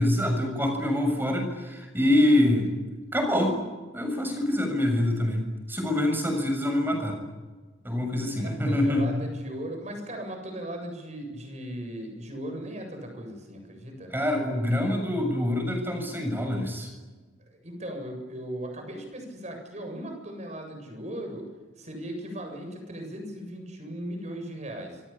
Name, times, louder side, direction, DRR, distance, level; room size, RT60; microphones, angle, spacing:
voice 1, 0.0-2.7 3.1-3.6 3.9-7.2 7.8-9.1 14.1-16.9, left 1 dB, 10° right, 3 dB, 7.1 m, -25 dB
voice 2, 8.1-14.1 17.5-21.5 21.8-25.0, right 1 dB, 35° right, 4 dB, 7.8 m, -38 dB
28.0 x 23.0 x 8.9 m, 1.3 s
head